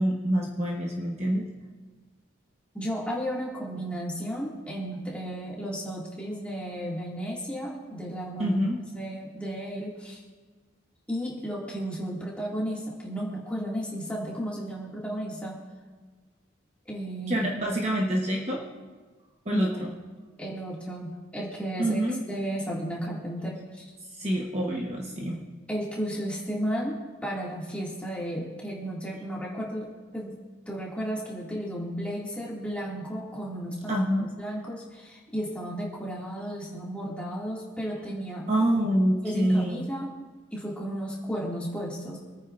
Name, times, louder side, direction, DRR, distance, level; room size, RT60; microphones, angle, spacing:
voice 1, 0.0-1.5 8.4-8.8 17.3-18.6 19.4-19.9 21.8-22.2 24.2-25.4 33.9-34.3 38.5-39.8, right 1 dB, 30° right, -1 dB, 1.1 m, -26 dB
voice 2, 2.7-10.2 11.1-15.6 16.9-17.4 19.5-19.9 20.4-22.0 22.3-23.9 25.7-29.9 30.1-30.4 30.7-34.0 34.4-38.5 38.7-40.1 40.5-42.2, equal, 5° left, -5 dB, 2.2 m, -33 dB
28.0 x 9.3 x 2.6 m, 1.4 s
head